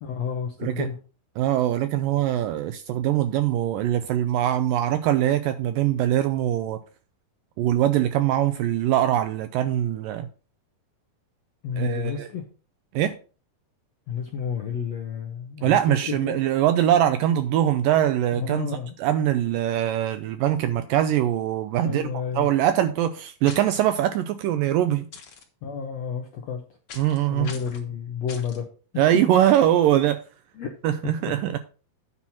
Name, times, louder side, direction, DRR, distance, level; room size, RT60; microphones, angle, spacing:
voice 1, 0.0-1.0 11.6-12.4 14.1-16.4 18.3-18.9 21.8-22.5 25.6-26.6 27.3-28.7 28.9-29.1 30.6-30.7 31.0-31.3, left 7 dB, 75° left, 1.5 m, -31 dB
voice 2, 1.4-6.8 7.6-10.3 11.8-12.3 12.9-13.2 15.6-18.7 19.0-25.1 27.0-27.5 29.0-30.2 30.8-31.6, right 11 dB, 80° right, 2.0 m, -22 dB
sound 1, 23.4-23.8 25.1-25.4 26.9-27.2 27.4-27.8 28.3-28.6, left 5 dB, 55° left, 1.7 m, -41 dB
9.6 x 4.4 x 5.8 m
omnidirectional pair, 4.4 m